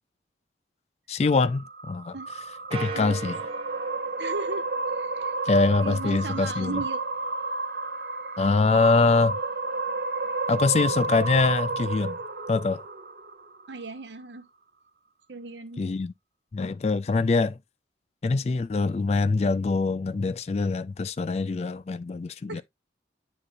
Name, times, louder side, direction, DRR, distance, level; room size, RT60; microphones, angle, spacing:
voice 1, 1.1-2.2 2.7-3.4 5.5-6.8 8.4-9.4 10.5-12.2 12.5-12.8 15.8-16.1 16.5-17.6 18.2-22.6, left 3 dB, 35° left, 0.3 m, -24 dB
sound 1, 1.2-13.7, right 3 dB, 55° right, 0.7 m, -31 dB
sound 2, 2.7-5.4, right 5 dB, 35° right, 1.0 m, -39 dB
voice 2, 4.2-4.7 4.9-5.3 5.8-7.0 13.7-14.5 15.3-15.8 22.5-22.6, right 3 dB, 80° right, 0.9 m, -36 dB
9.8 x 3.9 x 2.5 m
head